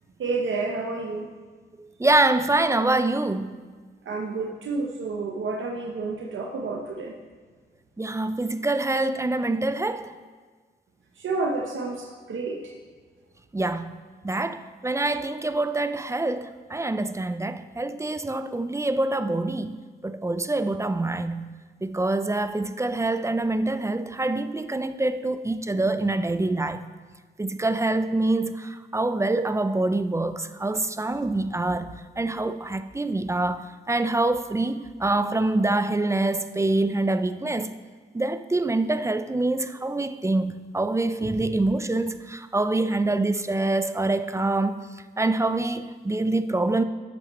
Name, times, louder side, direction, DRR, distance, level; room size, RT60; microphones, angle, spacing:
voice 1, 0.2-1.3 4.1-7.1 11.2-12.7, right 3 dB, 75° right, 0.8 m, -30 dB
voice 2, 1.8-3.6 8.0-10.1 13.5-13.9 14.2-21.5 21.8-26.8 27.4-37.7 38.1-44.8 45.2-46.8, right 2 dB, 15° right, 0.4 m, -25 dB
11.5 x 8.0 x 3.1 m
cardioid pair, 65°, 20 cm